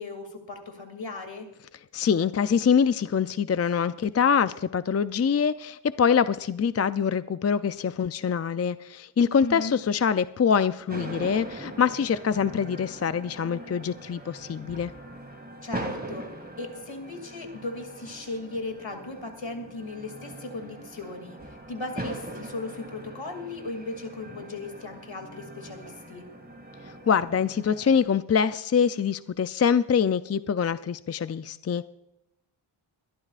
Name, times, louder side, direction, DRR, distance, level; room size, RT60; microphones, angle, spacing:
voice 1, 0.0-1.5 9.4-9.8 15.6-16.2 16.6-26.2, left 2 dB, 65° left, 5 dB, 2.6 m, -37 dB
voice 2, 1.9-14.9 27.1-31.9, left 7 dB, 35° left, 13 dB, 0.4 m, -24 dB
sound 1, 10.9-28.0, right 1 dB, 20° right, 2.3 m, -41 dB
22.5 x 13.0 x 2.5 m, 0.86 s
wide cardioid pair, 80°, 48 cm